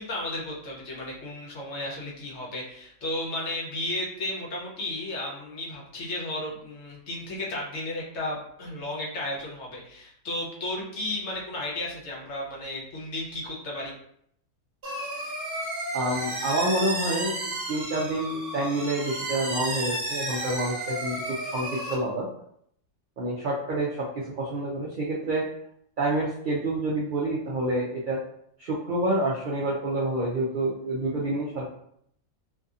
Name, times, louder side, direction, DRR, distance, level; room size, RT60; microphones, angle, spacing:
voice 1, 0.0-13.9, left 1 dB, 60° left, -3 dB, 1.0 m, -34 dB
sound 1, 14.8-21.9, right 1 dB, 50° right, 0.9 m, -32 dB
voice 2, 15.9-17.3 17.7-22.3 23.2-25.5 26.0-28.2 28.6-31.7, right 1 dB, 75° right, -4 dB, 0.4 m, -28 dB
2.6 x 2.6 x 2.4 m, 0.70 s
omnidirectional pair, 1.4 m